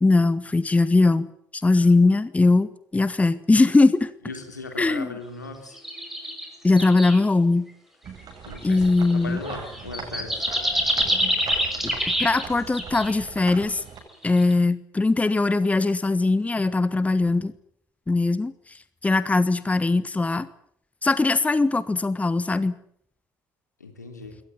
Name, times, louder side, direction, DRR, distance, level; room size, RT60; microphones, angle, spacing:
voice 1, 0.0-4.1 4.8-5.1 6.6-7.7 8.6-9.4 11.8-13.8 14.2-17.5 18.1-18.5 19.0-20.5 21.0-22.8, left 3 dB, 15° left, 16 dB, 1.3 m, -20 dB
voice 2, 4.2-5.8 8.4-10.5 23.8-24.4, left 3 dB, 85° left, 5 dB, 3.6 m, -38 dB
sound 1, 5.7-6.5 6.8-7.2 8.1-8.2 8.6-12.5 12.7-13.1 14.2-14.5, equal, 5° right, 6.1 m, -26 dB
sound 2, 8.0-14.0, right 5 dB, 45° right, 7.7 m, -39 dB
22.5 x 18.5 x 9.8 m, 0.66 s
figure-of-eight pair, 55°, 9 cm